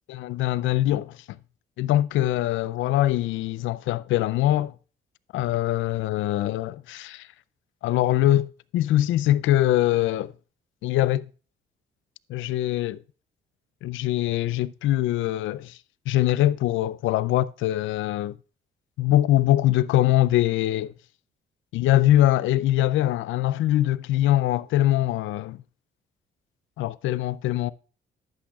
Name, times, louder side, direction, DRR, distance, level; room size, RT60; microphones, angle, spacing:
voice 1, 0.2-1.2 1.8-4.7 5.3-7.3 7.8-10.3 10.8-11.3 12.3-13.0 13.8-15.8 16.1-18.4 19.0-20.9 21.7-25.6 26.8-27.7, left 14 dB, 80° left, 0.4 m, -23 dB
11.5 x 8.8 x 2.3 m
cardioid pair, 90°, 20 cm